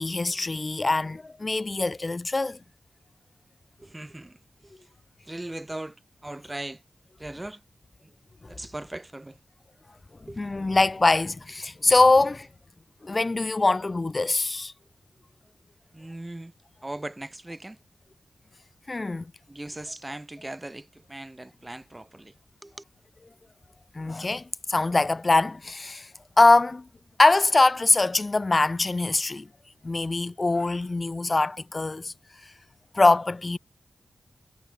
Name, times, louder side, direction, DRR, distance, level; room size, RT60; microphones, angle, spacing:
voice 1, 0.0-2.6 10.4-12.5 13.0-14.7 18.9-19.3 23.9-26.1 26.4-26.9 27.2-29.5 29.8-32.1 32.9-33.6, left 3 dB, 40° left, 0.5 m, -23 dB
voice 2, 3.8-4.9 5.2-6.8 7.2-7.6 8.0-8.1 8.5-9.4 10.2-10.4 15.9-16.5 16.8-17.8 19.5-22.3 22.6-22.7, right 1 dB, 20° right, 3.4 m, -39 dB
cardioid pair, 55°, 0 cm